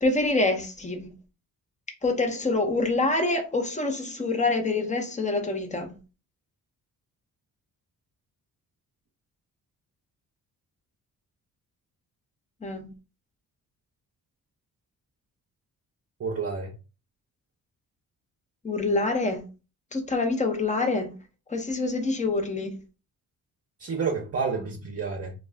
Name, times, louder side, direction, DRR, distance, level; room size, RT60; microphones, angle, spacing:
voice 1, 0.0-1.1 2.0-6.0 12.6-12.9 18.6-19.4 19.9-21.1 21.5-22.8, left 3 dB, 20° left, 0.7 m, -26 dB
voice 2, 16.2-16.7 23.8-25.3, right 5 dB, 40° right, 0.7 m, -29 dB
2.4 x 2.3 x 3.3 m
cardioid pair, 80°, 36 cm